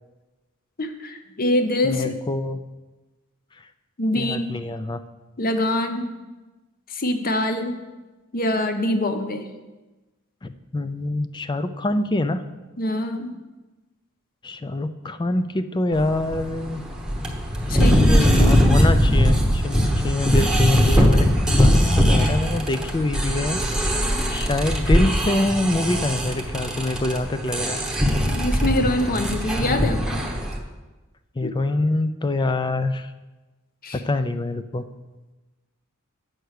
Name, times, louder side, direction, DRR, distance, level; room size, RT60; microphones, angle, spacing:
voice 1, 0.8-2.1 4.0-4.5 5.4-6.1 6.9-7.8 8.3-9.4 12.8-13.3 17.7-18.7 28.3-30.3 31.4-31.5 33.8-34.0, left 1 dB, 40° left, 7 dB, 0.8 m, -24 dB
voice 2, 1.8-2.6 4.2-5.0 10.4-12.4 14.4-16.8 17.7-23.6 24.3-27.8 31.4-33.1 33.9-34.8, left 2 dB, 20° left, 10 dB, 0.4 m, -25 dB
sound 1, 16.0-30.6, equal, 5° right, 0.9 m, -20 dB
8.0 x 5.8 x 6.4 m, 1.2 s
head